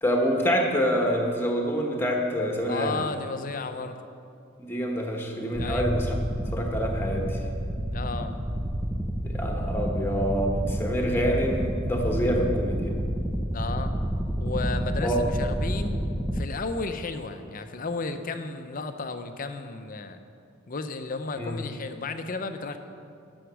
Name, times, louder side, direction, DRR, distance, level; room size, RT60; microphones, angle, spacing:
voice 1, 0.0-3.0 4.6-6.2 6.5-7.4 9.2-12.9 15.0-15.2 21.4-21.6, equal, 10° left, 1 dB, 1.2 m, -26 dB
voice 2, 2.7-4.0 5.5-5.9 7.9-8.4 13.5-14.0 14.4-16.1 16.3-20.2 20.7-22.8, left 3 dB, 40° left, 8 dB, 0.6 m, -33 dB
sound 1, 5.5-16.4, equal, 5° right, 0.4 m, -29 dB
11.5 x 7.2 x 6.1 m, 2.5 s
head